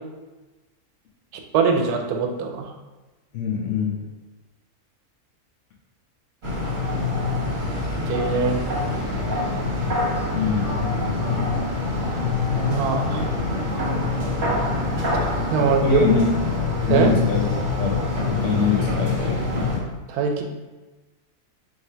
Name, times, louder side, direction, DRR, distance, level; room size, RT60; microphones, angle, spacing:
voice 1, 1.5-2.7 8.1-8.6 12.7-13.3 15.5-16.0 16.9-17.1 20.1-20.4, right 6 dB, 90° right, 4 dB, 1.1 m, -22 dB
voice 2, 3.3-4.1 10.3-11.3 15.6-16.3 16.9-17.5 17.8-19.7, left 5 dB, 60° left, -1 dB, 0.9 m, -24 dB
sound 1, 6.4-19.8, left 3 dB, 40° right, 0.9 m, -25 dB
3.2 x 2.7 x 4.4 m, 1.1 s
omnidirectional pair, 1.6 m